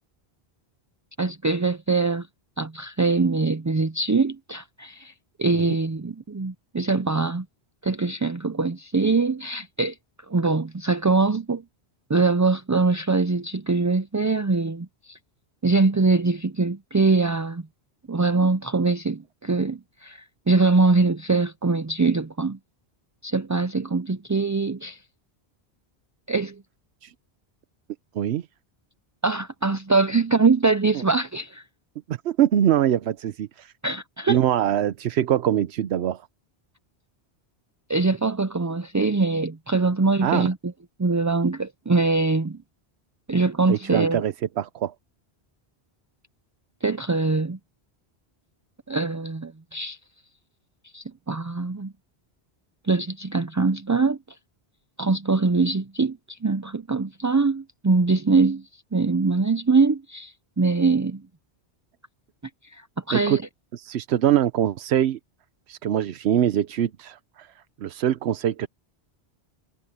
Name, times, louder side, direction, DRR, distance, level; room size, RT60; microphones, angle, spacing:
voice 1, 1.2-2.3 2.6-5.1 5.4-7.5 7.8-9.9 10.3-11.6 12.1-15.2 15.6-17.6 18.1-22.6 23.2-25.0 26.3-26.6 29.2-31.6 33.8-34.4 37.9-40.7 41.0-42.6 43.3-44.2 46.8-47.6 48.9-50.0 50.9-51.9 52.9-54.2 55.0-58.6 58.9-61.2 62.7-63.4, right 3 dB, 25° right, 0.4 m, -23 dB
voice 2, 28.1-28.5 30.9-31.0 32.1-33.7 34.3-36.2 40.2-40.5 43.7-44.9 63.1-63.4 63.7-65.2 65.7-67.5 67.8-68.7, right 10 dB, 85° right, 0.9 m, -23 dB
omnidirectional pair, 1.1 m